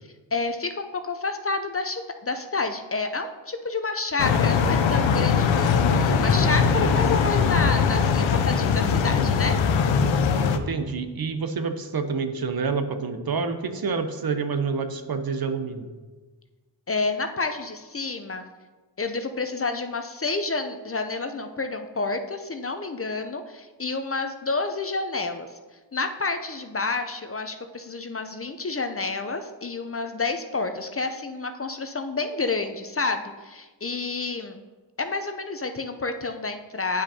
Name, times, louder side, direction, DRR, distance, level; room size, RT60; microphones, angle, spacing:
voice 1, 0.3-9.6 16.9-18.4 19.0-25.5 25.9-34.6 35.0-37.0, left 3 dB, 30° left, 7 dB, 0.6 m, -29 dB
sound 1, 4.2-10.6, left 6 dB, 75° left, 0.6 m, -21 dB
voice 2, 10.5-15.9, right 5 dB, 50° right, 8 dB, 0.8 m, -28 dB
9.3 x 5.0 x 2.8 m, 1.3 s
cardioid pair, 50°, 46 cm